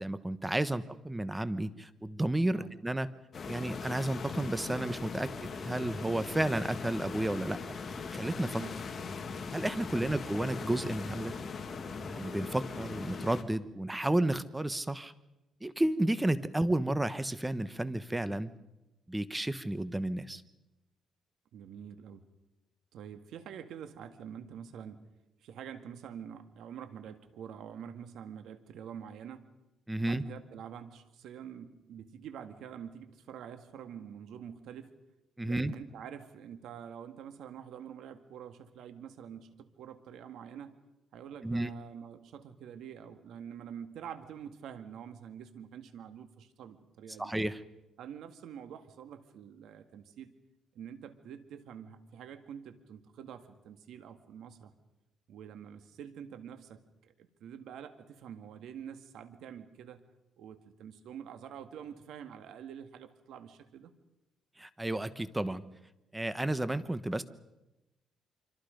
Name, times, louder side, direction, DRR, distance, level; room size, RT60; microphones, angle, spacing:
voice 1, 0.0-3.1 3.5-7.8 8.1-8.6 9.5-11.3 12.0-15.1 15.6-18.5 19.1-20.4 29.9-30.2 35.4-35.7 41.4-41.7 47.2-47.6 64.6-65.6 66.1-67.2, right 1 dB, 10° right, 14 dB, 1.1 m, -32 dB
sound 1, 3.3-13.4, left 5 dB, 45° left, 2.4 m, -40 dB
voice 2, 21.5-22.2 22.9-25.1 25.4-29.5 30.0-34.9 35.4-40.8 41.1-47.3 48.0-50.3 50.7-54.7 55.3-60.0 60.4-63.9, right 8 dB, 80° right, 9 dB, 1.9 m, -46 dB
26.0 x 25.0 x 5.2 m, 0.95 s
cardioid pair, 90°, 0 cm